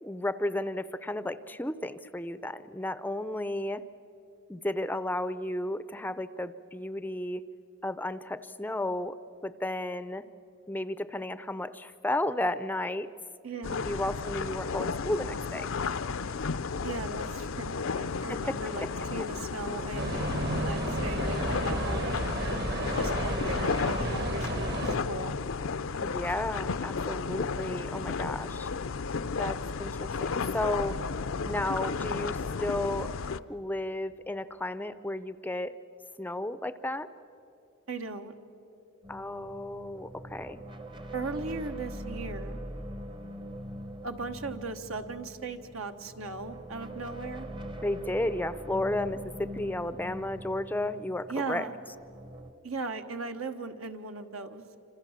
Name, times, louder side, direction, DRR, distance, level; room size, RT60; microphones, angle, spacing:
voice 1, 0.0-3.8 4.5-7.4 7.8-9.2 9.4-10.3 10.7-13.1 13.9-15.7 18.3-18.9 26.0-28.7 29.4-31.0 31.4-33.1 33.5-35.8 36.2-37.1 39.1-40.6 47.8-51.7, left 1 dB, 10° left, 14 dB, 0.5 m, -33 dB
voice 2, 13.4-13.8 16.8-20.3 20.5-22.2 23.0-25.3 37.9-38.3 41.1-42.6 44.0-47.5 51.3-51.7 52.6-54.7, right 3 dB, 80° right, 7 dB, 1.5 m, -38 dB
sound 1, 13.6-33.4, left 5 dB, 70° left, 0.6 m, -33 dB
sound 2, 20.0-25.0, right 1 dB, 50° right, 1.6 m, -32 dB
sound 3, 39.0-52.5, equal, 25° right, 0.8 m, -42 dB
27.0 x 26.5 x 7.4 m, 2.9 s
head